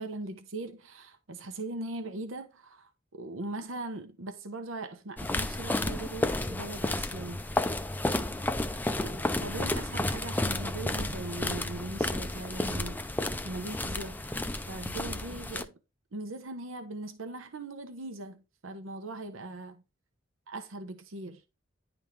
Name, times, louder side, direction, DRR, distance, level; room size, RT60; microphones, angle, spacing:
voice 1, 0.0-7.4 8.9-14.4 14.7-15.8 16.1-19.8 20.5-21.4, right 2 dB, 80° right, 0.9 m, -40 dB
sound 1, 5.2-15.6, left 1 dB, 10° left, 0.4 m, -32 dB
10.5 x 3.6 x 3.2 m
head